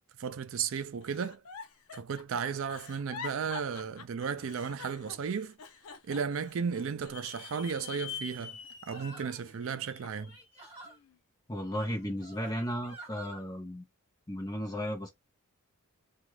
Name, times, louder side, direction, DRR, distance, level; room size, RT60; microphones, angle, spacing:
voice 1, 0.2-1.4 1.9-5.6 6.1-10.3, right 6 dB, 65° right, 0.4 m, -34 dB
Giggle, 1.0-7.4 7.8-8.7 9.2-10.3 10.8-11.2, left 6 dB, 85° left, 0.6 m, -48 dB
sound 1, 7.1-10.6, left 8 dB, 55° left, 0.8 m, -45 dB
sound 2, 8.9-9.5 10.2-11.0 11.9-13.4, right 3 dB, 30° right, 1.6 m, -48 dB
voice 2, 11.5-13.9 14.3-15.1, equal, 15° left, 0.8 m, -35 dB
2.9 x 2.4 x 3.2 m
head